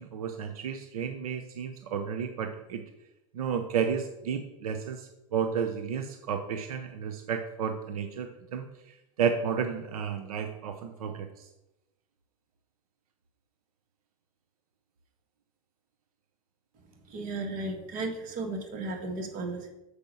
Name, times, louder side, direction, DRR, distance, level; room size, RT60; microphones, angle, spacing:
voice 1, 0.0-2.8 3.3-11.5, right 7 dB, 85° right, 6 dB, 0.7 m, -32 dB
voice 2, 17.1-19.7, right 2 dB, 45° right, 4 dB, 1.7 m, -35 dB
6.9 x 4.6 x 5.5 m, 0.94 s
hypercardioid pair, 110°, 18 cm